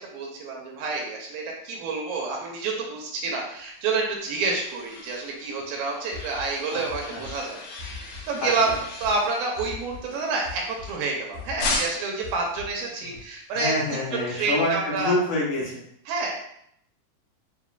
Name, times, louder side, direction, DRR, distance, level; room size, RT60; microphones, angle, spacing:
voice 1, 0.0-8.7 9.0-13.7 14.3-15.2 16.1-16.4, right 3 dB, 85° right, -1 dB, 2.3 m, -28 dB
sound 1, 3.9-11.2 11.6-12.2, left 2 dB, 90° left, 2.6 m, -36 dB
sound 2, 6.1-6.6 6.9-7.5 7.8-8.4 8.7-9.3 9.6-13.2, left 4 dB, 45° left, 1.3 m, -41 dB
voice 2, 8.4-8.8 13.5-15.8, left 1 dB, 75° left, -3 dB, 2.2 m, -27 dB
6.9 x 2.4 x 2.4 m, 0.72 s
omnidirectional pair, 4.1 m